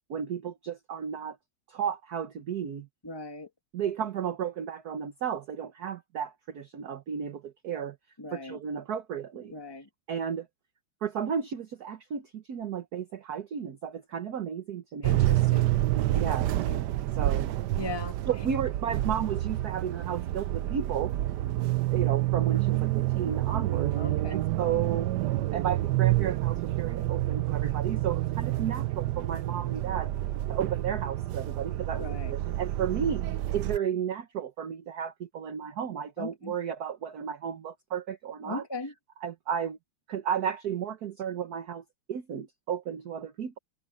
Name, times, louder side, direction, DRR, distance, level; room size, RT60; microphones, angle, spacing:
voice 1, 0.0-1.4 1.7-2.9 3.7-8.0 8.3-9.5 10.1-10.5 11.0-15.1 16.1-16.5 17.2-17.5 18.3-21.1 21.6-23.9 24.3-25.1 25.5-30.1 30.5-33.2 33.5-38.6 39.2-39.8 40.1-41.8 42.1-43.6, right 8 dB, 50° right, 1.4 m, -33 dB
voice 2, 3.0-3.5 8.2-8.6 9.5-9.9 15.0-15.8 16.2-16.3 16.6-16.9 17.7-18.2 23.9-24.4 32.0-32.4 36.2-36.5 38.4-38.9, left 2 dB, 15° left, 1.3 m, -38 dB
sound 1, 15.0-33.8, right 15 dB, 80° right, 0.9 m, -28 dB
omnidirectional pair, 2.4 m